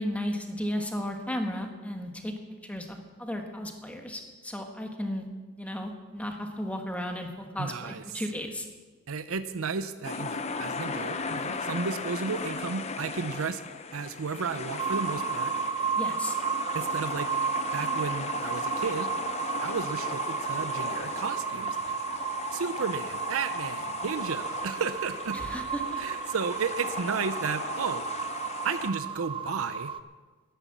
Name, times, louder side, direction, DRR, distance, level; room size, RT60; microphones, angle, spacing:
voice 1, 0.0-2.3 2.6-5.3 5.6-8.7 15.9-16.4 25.3-26.0, equal, 5° left, 3 dB, 1.4 m, -34 dB
voice 2, 7.6-8.2 9.1-13.6 13.9-15.5 16.7-17.3 17.7-19.1 19.6-21.9 22.5-25.4 26.0-28.0 28.6-29.9, right 5 dB, 75° right, 11 dB, 0.6 m, -33 dB
sound 1, 10.0-28.9, left 4 dB, 30° left, 0.7 m, -37 dB
sound 2, 14.8-30.0, right 6 dB, 25° right, 0.4 m, -33 dB
12.5 x 11.0 x 7.3 m, 1.3 s
head